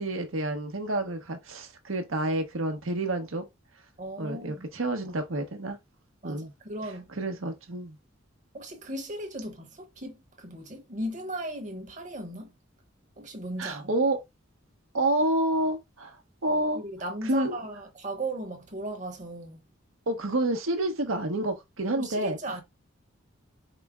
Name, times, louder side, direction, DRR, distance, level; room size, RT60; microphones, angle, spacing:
voice 1, 0.0-3.4 4.2-5.8 6.2-6.5 7.2-8.0 13.6-14.2 14.9-16.2 16.4-16.8 17.2-17.6 20.1-22.4, right 1 dB, 85° right, 1.0 m, -28 dB
voice 2, 4.0-4.6 6.2-7.1 8.5-12.5 13.2-13.9 16.7-19.6 21.9-22.6, right 1 dB, 35° right, 1.0 m, -37 dB
4.9 x 2.1 x 3.5 m
head